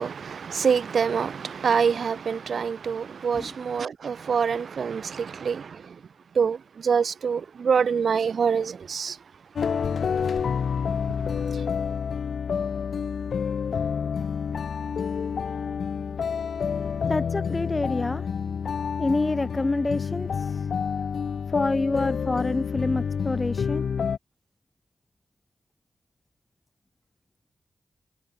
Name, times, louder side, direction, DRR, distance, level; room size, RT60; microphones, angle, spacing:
voice 1, 0.0-6.0 6.3-9.2 11.3-11.6, right 6 dB, 75° right, 1.3 m, -26 dB
sound 1, 9.6-24.2, left 6 dB, 80° left, 0.9 m, -28 dB
voice 2, 16.8-18.3 19.0-20.7 21.5-23.9, left 2 dB, 30° left, 2.3 m, -27 dB
cardioid pair, 75°, 0 cm